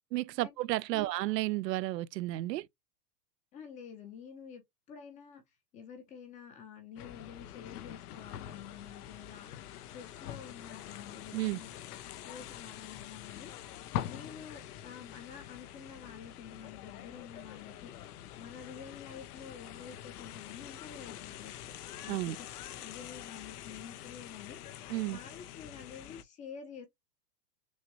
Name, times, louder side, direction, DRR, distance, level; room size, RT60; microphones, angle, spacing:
voice 1, 0.1-2.7 11.3-11.6 22.1-22.4 24.9-25.2, right 17 dB, 75° right, 0.6 m, -32 dB
voice 2, 3.5-4.6 4.9-5.4 5.7-9.5 9.8-11.7 12.2-13.5 14.0-17.9 18.4-21.5 22.0-22.4 22.8-24.6 25.0-26.9, left 7 dB, 15° left, 0.7 m, -49 dB
sound 1, 7.0-26.2, left 11 dB, 65° left, 0.7 m, -45 dB
6.4 x 2.2 x 3.0 m
supercardioid pair, 160°, 50 cm